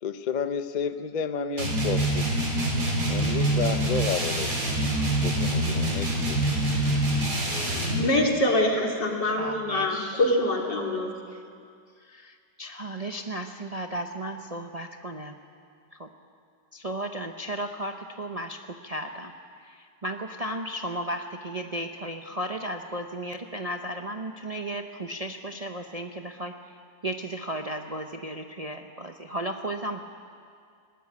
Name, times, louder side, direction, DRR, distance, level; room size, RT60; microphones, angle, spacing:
voice 1, 0.0-2.5 3.1-4.5 5.2-6.4, left 6 dB, 40° left, 10 dB, 0.6 m, -31 dB
sound 1, 1.6-8.1, right 1 dB, 65° right, 4.2 m, -25 dB
voice 2, 7.5-11.1, left 1 dB, 90° left, 0 dB, 3.4 m, -25 dB
voice 3, 9.2-10.2 12.6-15.4 15.9-16.1 16.7-19.3 19.6-26.6 27.0-30.0, right 1 dB, 35° right, 4 dB, 0.6 m, -34 dB
21.0 x 18.0 x 8.5 m, 2.3 s
omnidirectional pair, 1.8 m